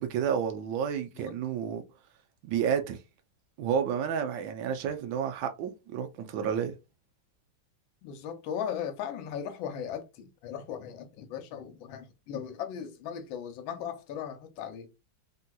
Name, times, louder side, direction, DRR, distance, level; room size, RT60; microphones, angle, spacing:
voice 1, 0.0-1.8 2.4-3.0 3.6-6.7, right 8 dB, 75° right, 1.3 m, -30 dB
voice 2, 8.0-14.9, left 8 dB, 80° left, 1.4 m, -37 dB
3.5 x 2.7 x 2.2 m
omnidirectional pair, 2.1 m